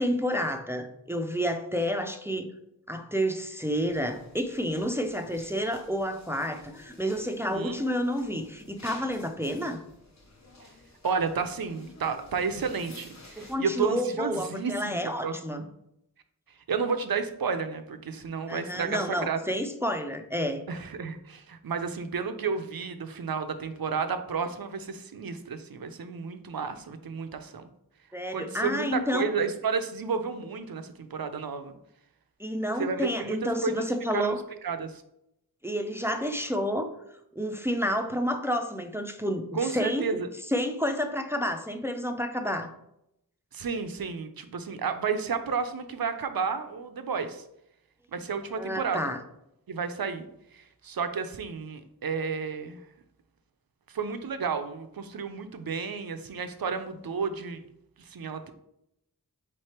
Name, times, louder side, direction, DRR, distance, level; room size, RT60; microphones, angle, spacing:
voice 1, 0.0-2.5 2.9-9.8 13.4-15.6 18.5-20.6 28.1-29.3 32.4-34.4 35.6-36.9 37.4-40.0 40.5-42.7 48.6-49.2, equal, 5° right, 6 dB, 0.5 m, -30 dB
sound 1, 3.7-13.6, left 2 dB, 45° left, 0.9 m, -52 dB
voice 2, 11.0-15.7 16.7-19.4 20.7-27.6 28.3-31.7 32.8-33.9 34.1-34.4 34.6-35.0 39.5-40.3 43.5-47.4 48.1-49.1 49.7-50.3 50.5-52.8 53.9-57.6 58.0-58.5, right 5 dB, 70° right, 9 dB, 0.6 m, -32 dB
3.7 x 3.3 x 4.3 m, 0.79 s
wide cardioid pair, 40°, 37 cm